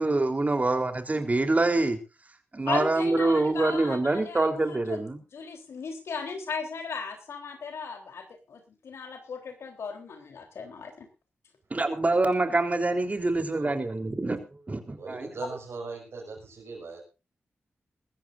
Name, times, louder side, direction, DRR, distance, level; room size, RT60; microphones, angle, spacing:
voice 1, 0.0-2.0 2.5-5.2 11.7-15.3, right 2 dB, 35° right, 6 dB, 3.6 m, -25 dB
voice 2, 2.7-5.0 5.3-11.1, left 5 dB, 80° left, 5 dB, 3.6 m, -36 dB
voice 3, 15.0-17.0, right 4 dB, 75° right, -3 dB, 6.1 m, -39 dB
21.5 x 14.5 x 2.6 m, 0.30 s
cardioid pair, 50°, 4 cm